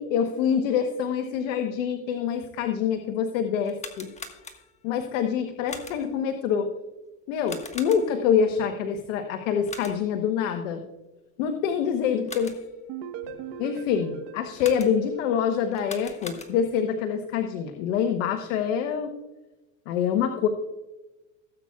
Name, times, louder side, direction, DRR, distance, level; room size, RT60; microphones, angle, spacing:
voice 1, 0.0-4.1 4.8-6.7 7.3-10.8 11.4-12.5 13.6-19.1 19.9-20.5, left 7 dB, 80° left, 7 dB, 1.1 m, -26 dB
sound 1, 3.6-4.9 5.7-6.2 7.4-8.3 9.7-10.2 12.0-12.8 14.6-15.2 15.7-16.8, left 4 dB, 20° left, 1.5 m, -42 dB
sound 2, 12.9-15.8, right 8 dB, 60° right, 1.2 m, -40 dB
17.5 x 8.6 x 2.4 m, 1.1 s
supercardioid pair, 110°, 37 cm